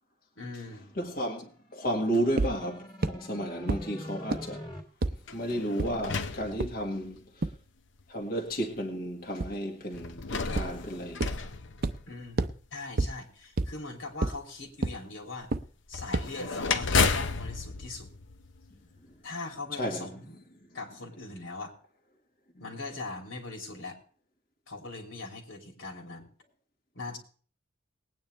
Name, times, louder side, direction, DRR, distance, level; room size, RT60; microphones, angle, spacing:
voice 1, 0.4-0.9 12.1-15.5 15.9-18.1 19.2-20.4 20.7-21.7 22.6-24.0 24.7-26.3 26.9-27.2, left 3 dB, 85° left, 3.1 m, -41 dB
voice 2, 1.0-1.4 1.7-4.6 5.3-7.2 8.1-10.2 10.5-11.4 19.8-20.1, right 1 dB, 50° left, 1.7 m, -32 dB
sound 1, 1.5-4.8, equal, 25° left, 2.1 m, -44 dB
sound 2, 2.4-2.5 3.0-3.1 3.7-3.8 4.3-4.4 5.0-5.1 5.8-5.9 6.6-6.7 7.4-7.5 9.4-9.5 10.6-10.7 11.2-11.3 11.8-11.9 12.4-12.5 13.0-13.1 13.6-13.7 14.2-14.3 14.8-14.9 15.5-15.6 16.1-16.2, right 2 dB, 50° right, 0.6 m, -26 dB
sound 3, 5.2-7.2 8.0-8.1 9.9-12.5 15.9-19.0, left 4 dB, 65° left, 0.8 m, -32 dB
19.5 x 9.4 x 3.3 m
head